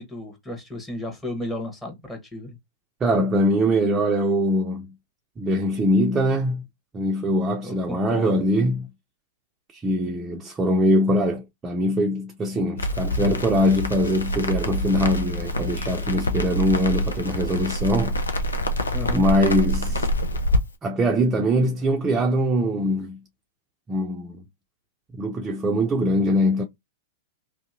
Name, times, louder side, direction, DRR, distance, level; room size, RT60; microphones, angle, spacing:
voice 1, 0.0-2.6 7.6-8.4 18.9-19.3, left 1 dB, 10° left, 1.2 m, -33 dB
voice 2, 3.0-4.9 5.4-6.7 6.9-8.9 9.7-18.2 19.1-20.1 20.8-23.2 23.9-24.4 25.2-26.6, equal, 20° right, 0.5 m, -22 dB
Crackle, 12.8-20.6, equal, 85° left, 0.6 m, -26 dB
2.7 x 2.7 x 2.6 m
figure-of-eight pair, 100°, 0 cm